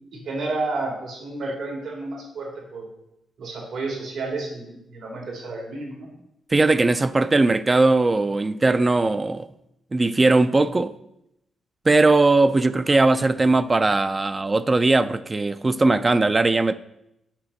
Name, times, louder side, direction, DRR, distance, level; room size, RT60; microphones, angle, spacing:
voice 1, 0.1-2.9 3.4-6.1, right 3 dB, 80° right, 3.2 m, -31 dB
voice 2, 6.5-9.5 9.9-10.9 11.9-16.7, right 2 dB, 25° right, 0.3 m, -19 dB
7.3 x 5.9 x 6.4 m
cardioid pair, 115°, 0 cm